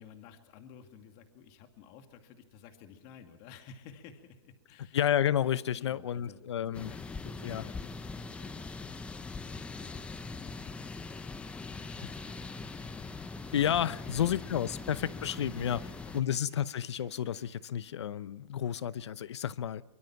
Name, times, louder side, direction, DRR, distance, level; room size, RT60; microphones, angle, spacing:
voice 1, 0.0-4.9 5.7-9.0 9.3-11.5 11.8-13.5 14.0-14.6 15.0-16.5, left 7 dB, 40° left, 2.3 m, -55 dB
voice 2, 4.9-6.9 7.4-7.6 13.5-19.8, left 10 dB, 80° left, 0.8 m, -31 dB
sound 1, 6.7-16.2, left 3 dB, 10° left, 0.7 m, -42 dB
sound 2, 12.1-17.9, right 9 dB, 25° right, 4.6 m, -67 dB
23.5 x 23.0 x 5.9 m
hypercardioid pair, 150°, 14 cm